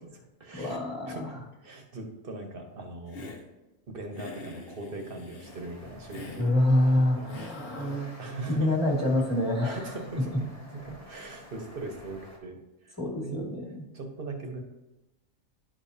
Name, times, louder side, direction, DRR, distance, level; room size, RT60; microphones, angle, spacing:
voice 1, 0.0-0.8 1.0-3.3 3.9-6.5 6.9-8.8 9.6-10.3 11.0-13.4 13.9-14.6, right 2 dB, 45° right, 3 dB, 1.2 m, -40 dB
voice 2, 0.5-1.3 6.4-8.2 8.5-9.9 13.0-13.7, left 1 dB, 10° left, -3 dB, 1.7 m, -26 dB
Hiss, 3.1-3.5 4.1-5.6 6.1-6.5 7.3-8.0, left 2 dB, 50° left, 1.1 m, -45 dB
sound 1, 5.4-12.4, left 1 dB, 30° left, 1.3 m, -50 dB
10.5 x 5.3 x 2.8 m, 1.0 s
omnidirectional pair, 1.4 m